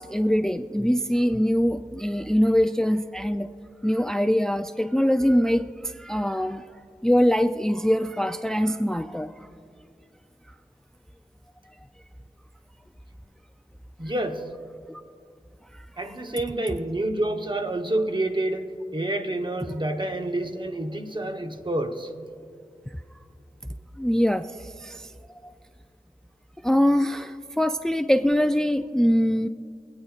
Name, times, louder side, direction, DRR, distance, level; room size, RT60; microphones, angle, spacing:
voice 1, 0.0-3.5 3.8-6.7 7.0-9.3 14.9-15.0 15.7-16.2 24.0-25.1 25.4-25.5 26.6-29.5, equal, 5° left, 9 dB, 0.3 m, -23 dB
voice 2, 14.0-14.4 16.0-22.1, right 1 dB, 35° right, 5 dB, 0.9 m, -28 dB
25.5 x 8.9 x 2.4 m, 2.4 s
wide cardioid pair, 45°, 14 cm